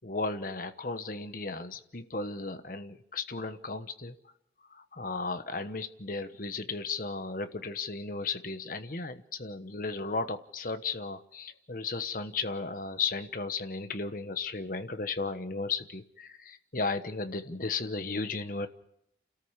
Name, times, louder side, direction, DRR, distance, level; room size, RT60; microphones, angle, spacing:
voice 1, 0.0-4.1 4.7-18.7, left 4 dB, 50° left, 9 dB, 1.2 m, -35 dB
29.5 x 13.5 x 6.7 m, 0.77 s
head